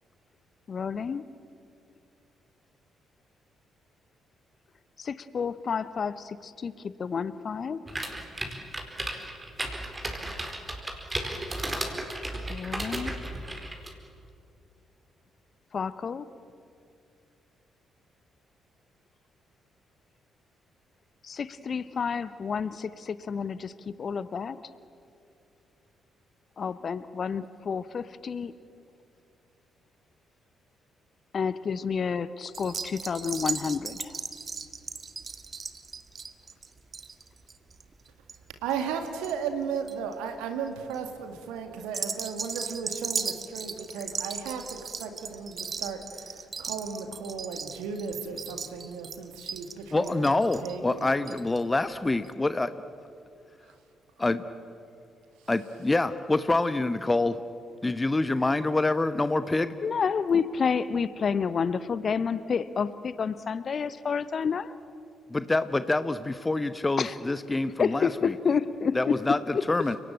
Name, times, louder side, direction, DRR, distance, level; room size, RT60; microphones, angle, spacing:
voice 1, 0.7-1.2 5.0-7.8 12.5-13.1 15.7-16.3 21.2-24.6 26.6-28.5 31.3-34.1 59.8-64.7 67.0-67.1 67.8-69.2 69.5-69.6, left 6 dB, 45° left, 16 dB, 0.8 m, -29 dB
sound 1, 7.9-13.9, right 1 dB, 25° right, 4.5 m, -34 dB
sound 2, 32.5-39.3 39.6-40.1 40.7-41.0 41.8-51.6 51.9-52.0 52.2-52.3, right 5 dB, 40° right, 1.5 m, -37 dB
voice 2, 38.6-51.3, right 6 dB, 70° right, 6 dB, 2.0 m, -35 dB
voice 3, 49.9-52.7 54.2-54.4 55.5-57.4 57.8-59.7 65.3-68.3 68.9-70.0, left 2 dB, 20° left, 12 dB, 1.0 m, -26 dB
30.0 x 18.5 x 8.9 m, 2.5 s
figure-of-eight pair, 40°, 0 cm